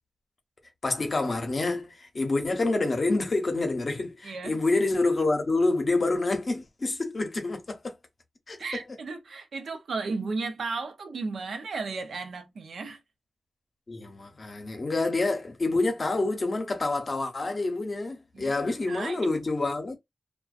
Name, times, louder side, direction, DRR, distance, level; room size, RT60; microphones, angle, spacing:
voice 1, 0.8-7.9 8.5-8.6 13.9-20.0, left 2 dB, 50° left, 0.7 m, -27 dB
voice 2, 4.2-4.6 8.6-13.0 18.3-18.6 18.9-19.3, right 4 dB, 90° right, 0.5 m, -34 dB
2.4 x 2.2 x 2.4 m
wide cardioid pair, 85°, 0 cm